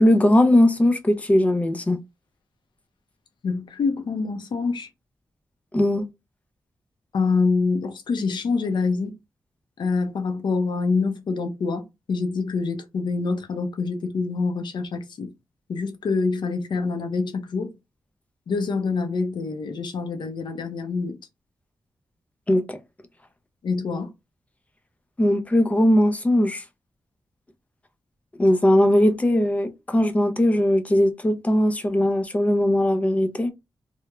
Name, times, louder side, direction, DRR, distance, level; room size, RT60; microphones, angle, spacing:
voice 1, 0.0-2.0 5.7-6.1 22.5-22.8 25.2-26.6 28.4-33.5, left 1 dB, 15° left, 0.4 m, -19 dB
voice 2, 3.4-4.9 7.1-9.1 9.8-15.3 15.7-17.7 18.5-21.2 23.6-24.1, left 4 dB, 70° left, 0.5 m, -26 dB
3.0 x 2.0 x 2.3 m
wide cardioid pair, 145°, 8 cm